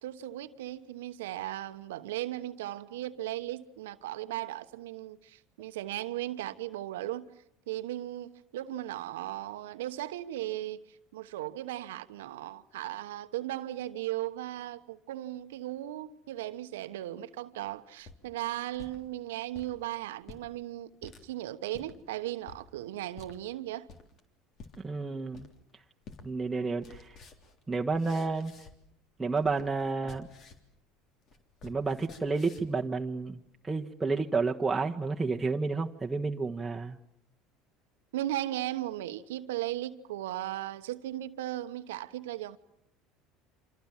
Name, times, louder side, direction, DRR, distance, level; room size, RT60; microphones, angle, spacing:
voice 1, 0.0-7.3 7.7-10.8 11.1-23.9 38.1-42.6, right 14 dB, 85° right, 1.1 m, -37 dB
sound 1, 17.8-19.0 19.4-19.7 20.2-20.5 21.0-21.2 21.7-21.9 22.5-22.6 23.2-23.4 23.9-24.2 24.6-24.8 25.3-25.7 26.1-26.3 26.6-28.9 29.2-30.7 31.0-32.8, left 4 dB, 50° left, 3.4 m, -51 dB
voice 2, 24.8-25.5 26.2-27.1 27.7-28.5 29.2-30.3 31.6-37.0, right 4 dB, 15° right, 1.3 m, -31 dB
28.0 x 26.5 x 7.4 m
hypercardioid pair, 85°, 0 cm